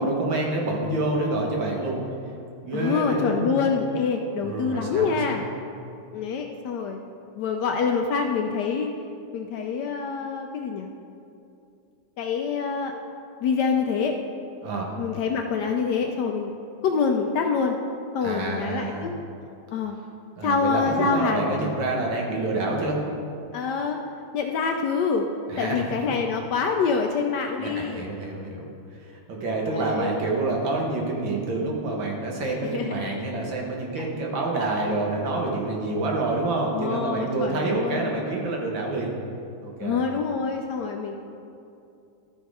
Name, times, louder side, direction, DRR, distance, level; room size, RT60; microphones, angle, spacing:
voice 1, 0.0-2.0 2.6-3.7 4.4-5.4 14.6-14.9 18.2-19.1 20.4-23.0 25.5-25.9 27.6-39.1 39.6-40.0, right 2 dB, 70° right, -1 dB, 1.9 m, -27 dB
voice 2, 2.7-5.4 6.1-7.0 7.4-8.9 9.3-10.9 12.2-12.9 13.4-14.1 15.0-16.5 16.8-17.8 18.1-19.1 19.7-20.0 20.4-21.5 23.5-24.0 24.3-25.3 25.6-28.1 29.7-30.1 32.6-33.2 34.0-34.1 36.7-38.2 39.8-41.2, left 5 dB, 75° left, 3 dB, 1.0 m, -26 dB
12.0 x 4.4 x 4.8 m, 2.6 s
omnidirectional pair, 2.2 m